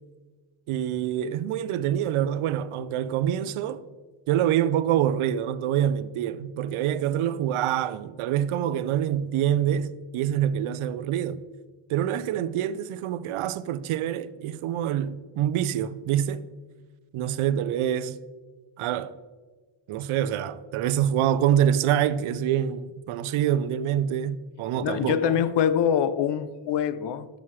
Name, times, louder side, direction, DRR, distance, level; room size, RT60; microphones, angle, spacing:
voice 1, 0.7-3.8 4.3-11.4 11.9-16.4 17.1-18.2 18.8-19.1 19.9-25.3, right 10 dB, 80° right, 0.6 m, -26 dB
voice 2, 24.8-27.4, left 8 dB, 60° left, 0.5 m, -24 dB
11.5 x 6.3 x 3.1 m
wide cardioid pair, 170°, 49 cm